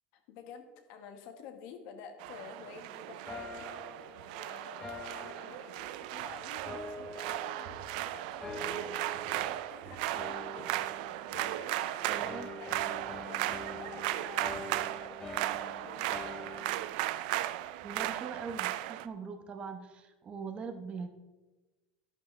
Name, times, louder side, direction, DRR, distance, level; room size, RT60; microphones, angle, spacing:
voice 1, 0.1-3.7 4.3-8.7 9.1-10.8 11.3-12.3 12.6-16.3, left 6 dB, 60° left, 6 dB, 1.6 m, -50 dB
sound 1, 2.2-19.1, right 15 dB, 70° right, 0.4 m, -36 dB
sound 2, 3.3-6.2 6.6-8.0 8.4-9.8 10.1-11.9 12.2-16.9, left 3 dB, 15° left, 0.9 m, -46 dB
sound 3, 5.7-18.4, right 5 dB, 50° right, 1.9 m, -58 dB
voice 2, 12.1-12.5 17.8-21.1, right 5 dB, 25° right, 6 dB, 1.0 m, -41 dB
11.5 x 11.0 x 3.3 m, 1.2 s
cardioid pair, 165°, 5 cm